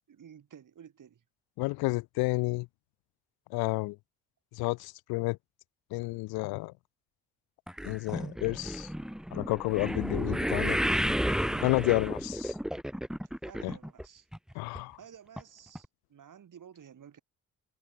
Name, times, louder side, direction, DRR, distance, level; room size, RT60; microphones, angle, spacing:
voice 1, 0.1-1.2 11.3-11.8 13.2-14.3 14.5-17.2, right 8 dB, 55° right, 4.6 m, -52 dB
voice 2, 1.6-2.7 3.5-4.0 4.6-5.4 5.9-6.7 7.8-8.9 9.3-10.8 11.6-12.5 13.6-13.7 14.6-15.0, left 24 dB, 80° left, 0.5 m, -30 dB
sound 1, 7.7-14.1 14.3-14.8 15.4-15.5 15.8-15.9, equal, ahead, 2.4 m, -32 dB
supercardioid pair, 55°, 37 cm